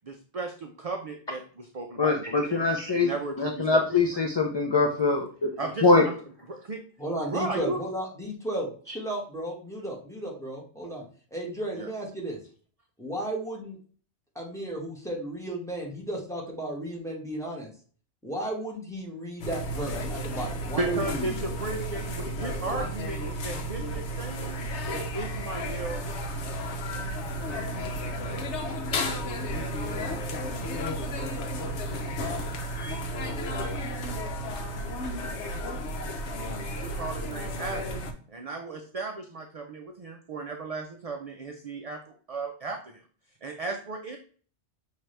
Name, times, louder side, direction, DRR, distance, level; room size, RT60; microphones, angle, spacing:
voice 1, 0.0-4.0 5.6-6.2 6.5-6.8 7.3-7.8 11.8-11.9 20.7-24.7 24.9-26.0 36.8-37.9 38.3-42.0 42.3-43.0 43.4-44.2, right 2 dB, 50° right, 4 dB, 0.4 m, -35 dB
voice 2, 2.0-3.1 3.4-5.5 5.8-6.1, left 3 dB, 40° left, 1 dB, 0.3 m, -23 dB
voice 3, 7.0-11.0 11.3-12.4 13.0-13.8 14.3-17.7 18.2-21.4, right 1 dB, 5° left, -3 dB, 1.3 m, -34 dB
sound 1, 19.4-38.1, equal, 80° left, 1.0 m, -33 dB
6.0 x 2.8 x 3.2 m, 0.43 s
omnidirectional pair, 1.2 m